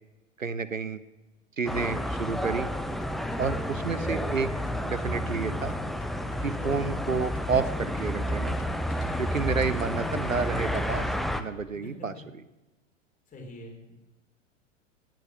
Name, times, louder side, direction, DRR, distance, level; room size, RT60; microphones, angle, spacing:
voice 1, 0.4-1.0 1.6-2.7 3.4-4.5 4.8-5.7 6.4-8.6 9.2-11.1 11.4-12.1, right 5 dB, 85° right, 15 dB, 0.8 m, -30 dB
sound 1, 1.7-11.4, equal, ahead, 0.6 m, -30 dB
sound 2, 2.8-10.8, left 3 dB, 45° left, 2.2 m, -48 dB
voice 2, 11.7-12.1 13.3-13.9, left 1 dB, 20° left, 1 dB, 4.1 m, -45 dB
17.5 x 9.0 x 6.2 m, 1.0 s
figure-of-eight pair, 90°, 38 cm